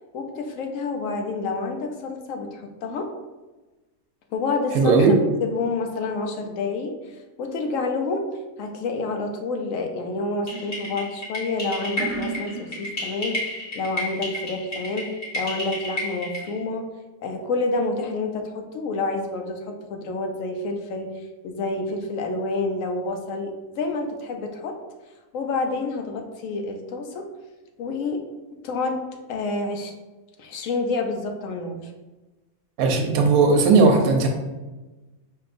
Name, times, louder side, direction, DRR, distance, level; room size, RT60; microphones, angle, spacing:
voice 1, 0.1-3.1 4.3-5.0 5.4-6.9 7.4-8.2 8.6-13.4 13.7-15.1 15.3-16.8 17.2-19.6 19.9-21.1 21.4-24.7 25.3-27.2 27.8-28.2 28.6-29.0 29.3-29.9 30.4-31.8, left 3 dB, 70° left, 4 dB, 0.9 m, -28 dB
voice 2, 4.7-5.1 32.8-34.3, right 4 dB, 80° right, 3 dB, 1.1 m, -17 dB
sound 1, 10.5-16.6, left 1 dB, 45° left, 1.2 m, -32 dB
5.3 x 2.8 x 2.5 m, 1.2 s
omnidirectional pair, 1.5 m